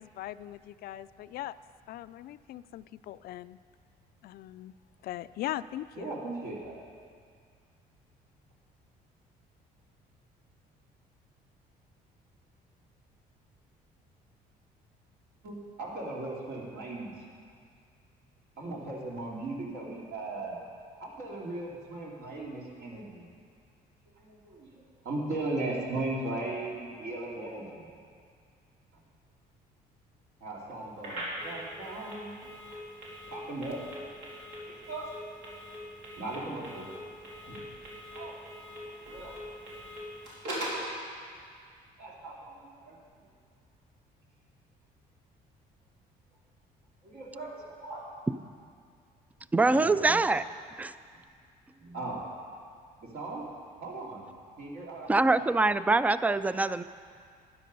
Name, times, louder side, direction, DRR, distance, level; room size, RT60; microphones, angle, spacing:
voice 1, 0.0-1.6 1.9-3.6 4.2-4.7 5.0-6.2, left 13 dB, 65° left, 15 dB, 0.4 m, -40 dB
voice 2, 6.0-6.8 15.4-17.1 18.6-20.6 20.9-23.3 24.2-24.7 25.0-27.9 30.4-32.4 32.7-32.8 33.3-33.8 34.7-35.1 36.2-36.9 37.5-37.6 38.1-38.4 39.0-39.4 42.0-43.0 47.0-48.1 49.8-50.2 51.8-52.3 53.0-53.5 53.8-54.2 54.6-55.4, right 2 dB, 70° right, -3 dB, 3.0 m, -38 dB
Telephone, 31.0-40.9, equal, 90° right, 3.7 m, -42 dB
voice 3, 49.5-50.4 50.8-50.9 55.1-56.8, right 3 dB, 10° right, 14 dB, 0.3 m, -24 dB
13.0 x 10.0 x 5.4 m, 2.2 s
cardioid pair, 110°, 17 cm